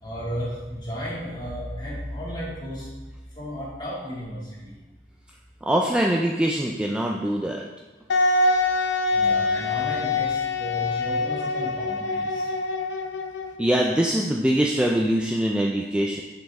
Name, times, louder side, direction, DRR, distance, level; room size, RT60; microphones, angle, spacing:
voice 1, 0.0-2.9 3.4-4.7 9.1-12.5, equal, 25° left, -8 dB, 2.2 m, -33 dB
voice 2, 5.6-7.6 13.6-16.2, right 1 dB, 5° right, -1 dB, 0.3 m, -23 dB
Wind instrument woodwind instrument, 8.1-13.7, left 3 dB, 75° left, 0.6 m, -24 dB
6.1 x 5.2 x 3.6 m, 1.2 s
head